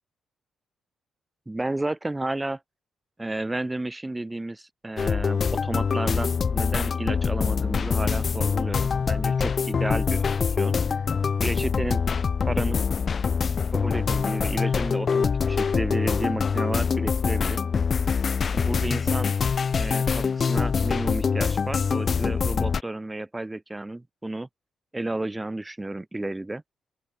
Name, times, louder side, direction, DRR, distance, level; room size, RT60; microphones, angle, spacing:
voice 1, 1.5-2.6 3.2-10.2 10.6-10.7 11.4-12.0 12.5-12.8 13.7-17.6 18.5-19.3 19.8-24.5 24.9-26.6, right 2 dB, 15° right, 2.1 m, -32 dB
sound 1, 5.0-22.8, left 6 dB, 40° left, 1.6 m, -24 dB
open air
cardioid pair, 105°, 0 cm